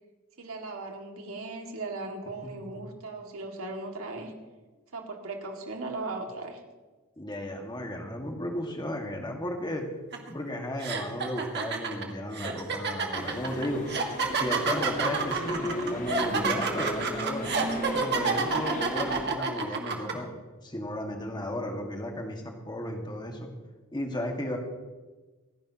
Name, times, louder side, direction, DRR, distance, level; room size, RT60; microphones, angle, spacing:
voice 1, 0.4-4.3 4.9-6.6, right 3 dB, 80° right, 2 dB, 2.2 m, -37 dB
voice 2, 2.4-2.8 7.2-9.9 10.3-14.0 14.3-17.5 17.9-23.5 23.9-24.6, left 1 dB, 20° left, 2 dB, 1.9 m, -34 dB
sound 1, 10.1-10.3 10.8-20.1, right 4 dB, 55° right, 1.8 m, -29 dB
sound 2, 13.1-19.3, left 1 dB, 40° left, 1.5 m, -36 dB
28.0 x 10.5 x 3.0 m, 1.3 s
head